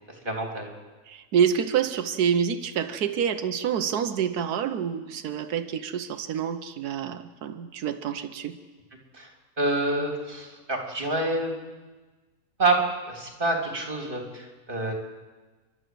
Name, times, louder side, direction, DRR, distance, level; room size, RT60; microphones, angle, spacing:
voice 1, 0.2-0.8 9.1-9.3 9.6-11.6 12.6-12.8 13.1-14.9, right 2 dB, 35° right, 2 dB, 3.5 m, -27 dB
voice 2, 1.1-8.6, right 8 dB, 90° right, 9 dB, 1.4 m, -27 dB
29.5 x 12.0 x 7.8 m, 1.3 s
omnidirectional pair, 1.6 m